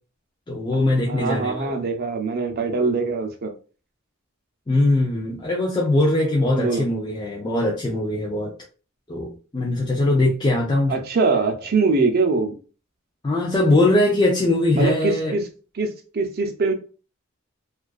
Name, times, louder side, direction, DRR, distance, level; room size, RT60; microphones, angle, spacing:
voice 1, 0.5-1.8 4.7-8.5 9.1-11.0 13.2-15.3, left 2 dB, 20° left, 0.4 m, -21 dB
voice 2, 1.1-3.5 6.5-6.8 10.9-12.6 14.7-15.4 15.8-16.7, right 3 dB, 50° right, 0.5 m, -23 dB
2.4 x 2.3 x 2.3 m
head